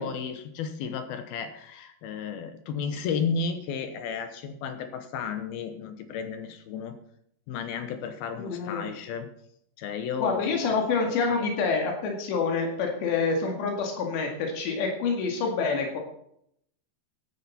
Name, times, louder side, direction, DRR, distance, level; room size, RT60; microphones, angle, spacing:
voice 1, 0.0-7.0 7.5-9.3 9.8-11.4, left 6 dB, 70° left, 8 dB, 2.7 m, -33 dB
voice 2, 8.4-8.9 10.2-16.0, left 4 dB, 90° left, 2 dB, 4.4 m, -27 dB
15.5 x 10.5 x 4.2 m, 0.71 s
omnidirectional pair, 4.9 m